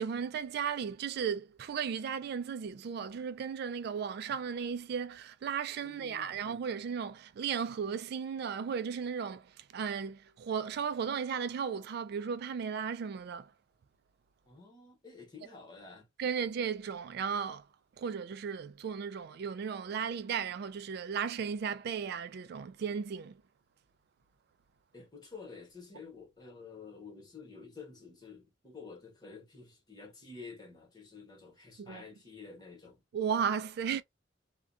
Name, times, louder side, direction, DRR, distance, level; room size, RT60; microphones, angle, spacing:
voice 1, 0.0-13.5 16.2-17.7 18.0-23.4 31.8-32.0 33.1-34.0, right 7 dB, 60° right, 0.3 m, -35 dB
voice 2, 5.8-6.4 14.4-16.1 24.9-33.0, left 4 dB, 25° left, 1.1 m, -50 dB
2.4 x 2.2 x 2.5 m
head